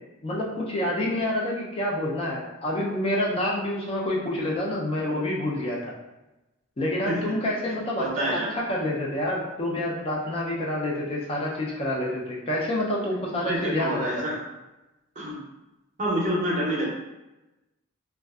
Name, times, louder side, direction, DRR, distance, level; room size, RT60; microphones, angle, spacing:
voice 1, 0.2-5.8 6.8-8.0 8.3-14.1, left 1 dB, 30° left, -3 dB, 0.4 m, -28 dB
voice 2, 7.7-8.5 13.4-14.4 15.2-15.4 16.0-16.9, right 1 dB, 40° right, -3 dB, 0.6 m, -28 dB
2.5 x 2.2 x 2.3 m, 1.0 s
head